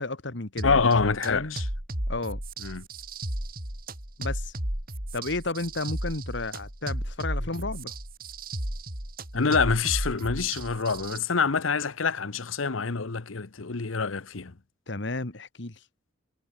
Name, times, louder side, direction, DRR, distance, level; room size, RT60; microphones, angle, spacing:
voice 1, 0.0-1.6 2.1-2.4 4.2-4.5 5.1-7.9 14.9-15.8, left 2 dB, 60° left, 1.9 m, -32 dB
voice 2, 0.6-1.6 2.6-2.8 9.3-14.5, left 5 dB, 80° left, 1.0 m, -26 dB
sound 1, 0.6-11.2, right 1 dB, 45° right, 4.9 m, -34 dB
head